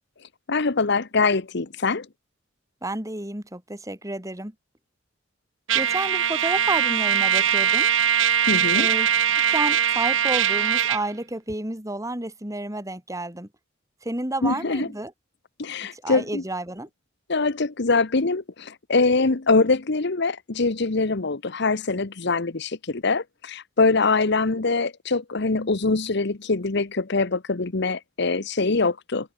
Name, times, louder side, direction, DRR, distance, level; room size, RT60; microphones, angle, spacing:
voice 1, 0.5-2.1 8.5-8.9 14.4-14.9 15.6-16.4 17.3-29.3, left 3 dB, 60° left, 1.1 m, -23 dB
voice 2, 2.8-4.5 5.7-7.9 8.7-9.1 9.5-13.5 14.0-15.1 15.9-16.9, right 2 dB, 15° right, 3.4 m, -30 dB
Trumpet, 5.7-11.0, right 9 dB, 80° right, 1.4 m, -21 dB
head